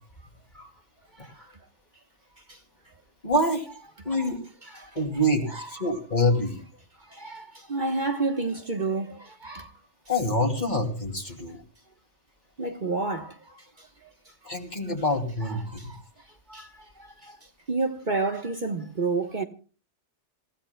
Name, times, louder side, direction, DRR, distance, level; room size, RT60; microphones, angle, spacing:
voice 1, 3.2-3.7 4.0-4.4 4.9-6.6 10.1-11.6 14.4-15.9, left 1 dB, 35° left, 2.9 m, -26 dB
voice 2, 4.0-4.3 4.6-4.9 5.5-5.7 7.1-9.7 12.6-13.9 15.4-16.0 16.5-17.4 17.7-19.4, right 3 dB, 45° right, 1.3 m, -31 dB
27.5 x 16.5 x 2.2 m
omnidirectional pair, 1.2 m